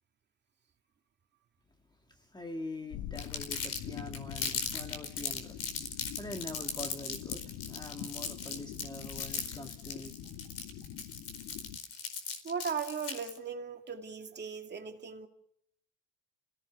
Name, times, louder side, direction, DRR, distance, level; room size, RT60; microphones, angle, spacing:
voice 1, 2.2-5.6 6.2-10.3, left 2 dB, 15° left, 5 dB, 1.8 m, -44 dB
sound 1, 2.9-11.8, left 11 dB, 90° left, 1.3 m, -45 dB
Crumpling crinkling, 3.2-13.4, left 5 dB, 50° left, 4.7 m, -38 dB
voice 2, 12.4-15.3, right 6 dB, 35° right, 4 dB, 2.5 m, -37 dB
28.5 x 17.0 x 7.0 m, 0.74 s
cardioid pair, 110°, 31 cm